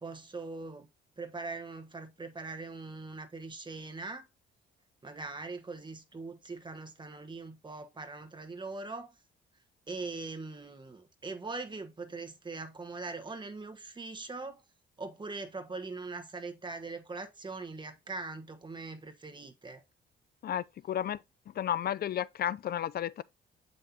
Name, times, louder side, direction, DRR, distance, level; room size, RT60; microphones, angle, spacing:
voice 1, 0.0-0.9 1.2-4.3 5.0-9.1 9.9-14.6 15.0-19.8, right 3 dB, 25° right, 1.3 m, -41 dB
voice 2, 20.4-21.2 21.6-23.2, left 10 dB, 50° left, 0.5 m, -32 dB
7.6 x 5.4 x 2.9 m
cardioid pair, 90°, 20 cm